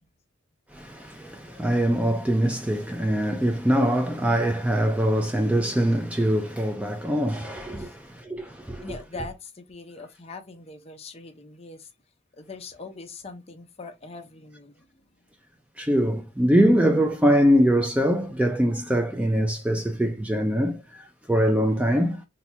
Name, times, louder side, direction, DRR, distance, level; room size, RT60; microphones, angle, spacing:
voice 1, 0.7-7.9 8.3-8.8 15.8-22.2, equal, 5° right, 0.3 m, -23 dB
voice 2, 8.8-11.9 12.3-15.2, left 3 dB, 30° left, 0.6 m, -42 dB
2.8 x 2.2 x 4.2 m
head